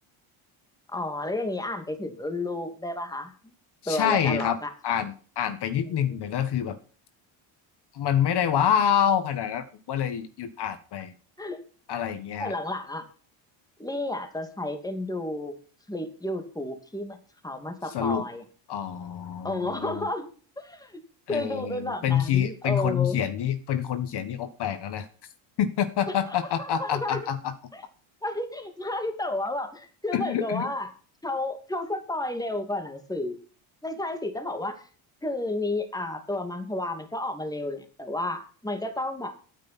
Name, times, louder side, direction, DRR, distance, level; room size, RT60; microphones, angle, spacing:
voice 1, 0.9-3.3 3.9-4.7 5.8-6.1 11.4-11.6 11.9-12.0 12.4-13.0 13.8-15.5 15.9-17.2 17.4-18.4 19.4-20.3 20.6-20.9 21.3-23.2 26.1-26.2 26.6-27.2 27.7-27.8 28.2-30.9 31.2-33.4 33.8-34.8 35.2-39.3, left 2 dB, 5° left, 6 dB, 2.5 m, -31 dB
voice 2, 3.8-4.6 4.8-6.8 7.9-11.1 11.9-12.5 17.9-18.3 18.7-20.1 21.3-25.1 25.6-27.5 30.1-30.7, left 9 dB, 55° left, 10 dB, 1.6 m, -27 dB
12.5 x 9.5 x 4.3 m, 0.39 s
cardioid pair, 115°, 49 cm